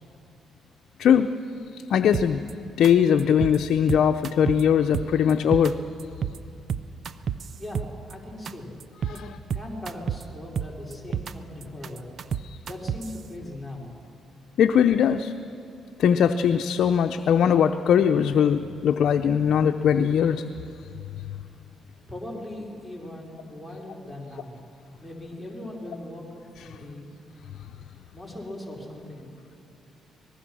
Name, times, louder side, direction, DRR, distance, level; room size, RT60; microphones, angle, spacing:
voice 1, 1.0-1.3 1.7-2.4 2.8-5.8 9.1-9.2 12.4-12.6 14.6-15.3 16.0-20.4 21.2-21.3, left 8 dB, 70° left, 6 dB, 0.7 m, -20 dB
sound 1, 2.1-2.5 2.8-2.9 3.2-3.6 3.9-4.6 4.9-5.7 6.0-6.4 6.7-8.1 8.4-8.5 8.8-9.2 9.5-10.2 10.5-11.3 11.6-13.2, right 7 dB, 55° right, 0.7 m, -30 dB
voice 2, 7.6-8.7 9.1-12.1 12.7-13.9 22.1-24.6 25.0-27.1 28.1-29.4, left 1 dB, ahead, -3 dB, 4.8 m, -39 dB
25.0 x 20.0 x 6.3 m, 2.5 s
cardioid pair, 90°, 0 cm